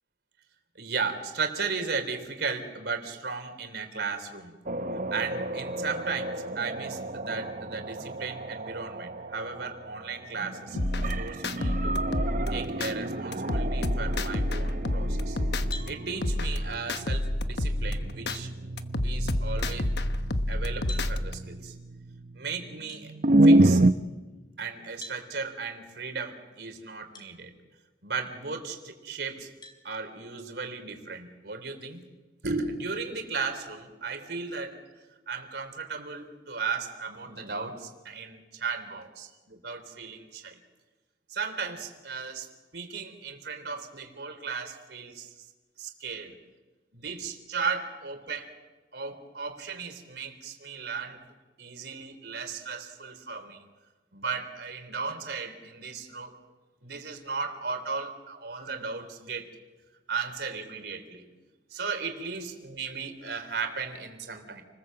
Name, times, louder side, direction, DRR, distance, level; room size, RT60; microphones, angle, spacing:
voice 1, 0.8-4.5 5.1-10.8 11.2-12.0 12.5-15.4 15.9-18.5 19.0-19.9 20.5-21.7 22.3-23.1 23.4-23.8 24.6-27.5 28.0-29.5 29.8-32.0 32.4-34.8 35.3-40.6 41.3-42.5 42.7-45.3 45.8-46.3 46.9-48.5 48.9-51.2 51.6-53.6 54.1-56.3 56.8-59.5 60.1-61.2 61.7-64.6, right 4 dB, 70° right, 6 dB, 3.6 m, -35 dB
sound 1, 4.7-23.9, right 1 dB, 50° right, 0.8 m, -29 dB
sound 2, 10.8-12.9 13.3-15.9 16.2-18.4 18.8-21.3, left 1 dB, 70° left, 1.2 m, -29 dB
sound 3, 15.7-16.0 17.6-17.7 18.3-18.5 20.9-21.1 22.9-23.0 25.0-25.2 27.1-27.3 27.9-28.0 29.6-29.8, left 2 dB, 25° left, 4.1 m, -42 dB
29.5 x 20.5 x 7.7 m, 1.2 s
head